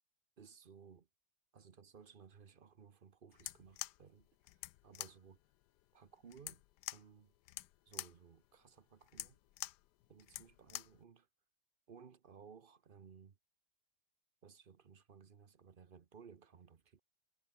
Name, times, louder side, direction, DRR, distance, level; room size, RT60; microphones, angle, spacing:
voice 1, 0.4-1.1 1.5-5.4 5.9-6.6 6.9-7.3 7.9-9.4 10.1-11.3 11.9-13.4 14.4-17.0, right 6 dB, 40° right, 0.8 m, -59 dB
sound 1, 3.3-11.0, left 16 dB, 70° left, 1.0 m, -48 dB
omnidirectional pair, 2.1 m